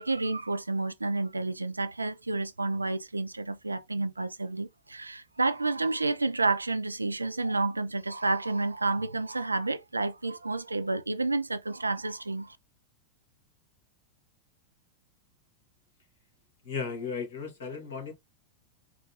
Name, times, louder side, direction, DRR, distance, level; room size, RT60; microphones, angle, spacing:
voice 1, 0.0-12.6, right 3 dB, 80° right, 0.3 m, -30 dB
voice 2, 16.6-18.1, left 5 dB, 60° left, 1.8 m, -35 dB
4.7 x 2.3 x 2.8 m
figure-of-eight pair, 90°, 0 cm